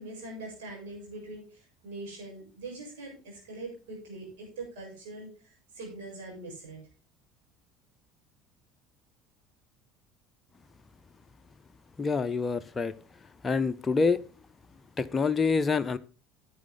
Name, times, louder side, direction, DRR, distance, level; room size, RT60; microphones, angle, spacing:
voice 1, 0.0-6.8, right 2 dB, 65° right, -2 dB, 7.3 m, -42 dB
voice 2, 12.0-12.9 13.4-14.2 15.0-16.0, left 4 dB, 25° left, 10 dB, 0.6 m, -26 dB
11.0 x 9.1 x 3.8 m, 0.35 s
figure-of-eight pair, 65°, 0 cm